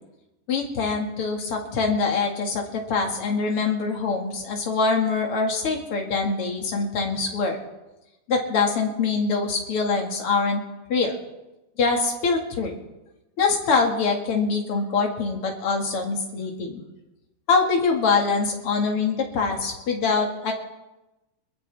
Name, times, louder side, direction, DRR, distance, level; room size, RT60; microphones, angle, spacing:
voice 1, 0.5-7.6 8.3-10.6 10.9-11.2 11.8-12.7 13.4-16.8 17.5-20.5, left 4 dB, 45° left, 1 dB, 2.6 m, -24 dB
22.5 x 14.0 x 3.5 m, 1.0 s
omnidirectional pair, 3.9 m